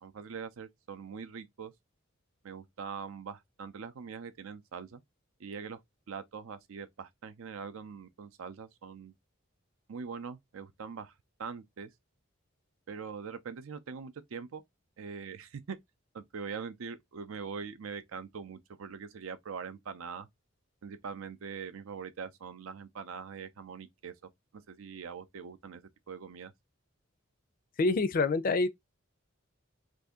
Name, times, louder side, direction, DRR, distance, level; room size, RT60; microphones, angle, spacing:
voice 1, 0.0-1.7 2.4-5.0 5.4-5.8 6.1-9.1 9.9-11.1 11.4-11.9 12.9-14.6 15.0-15.8 16.1-20.3 20.8-24.1 24.5-26.5, right 6 dB, 85° right, 0.5 m, -42 dB
voice 2, 27.8-28.7, left 3 dB, 45° left, 0.4 m, -26 dB
2.7 x 2.6 x 3.5 m
head